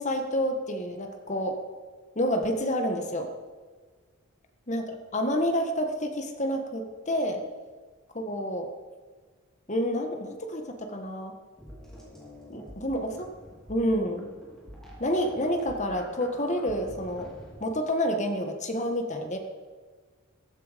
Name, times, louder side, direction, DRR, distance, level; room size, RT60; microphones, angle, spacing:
voice 1, 0.0-1.6 2.2-3.3 4.7-7.4 8.1-8.7 9.7-11.3 12.5-13.3 13.7-14.3 15.0-17.3 17.6-19.4, equal, 35° left, 5 dB, 1.6 m, -29 dB
sound 1, 11.6-17.6, equal, ahead, 4.0 m, -47 dB
15.0 x 15.0 x 5.2 m, 1.5 s
head